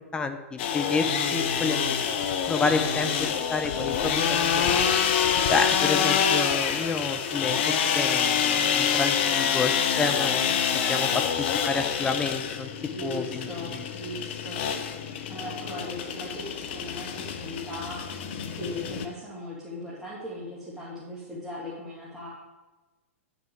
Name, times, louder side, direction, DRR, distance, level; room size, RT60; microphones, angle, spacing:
voice 1, 0.1-1.9 2.5-4.8 5.5-10.6 10.9-12.7 13.0-13.8, left 4 dB, 10° left, 7 dB, 0.8 m, -29 dB
sound 1, 0.6-19.1, left 7 dB, 50° left, 0.9 m, -26 dB
voice 2, 12.9-14.7 15.3-18.2 18.6-22.3, left 1 dB, 5° right, -9 dB, 2.4 m, -38 dB
10.5 x 6.6 x 4.7 m, 1.2 s
figure-of-eight pair, 110°, 7 cm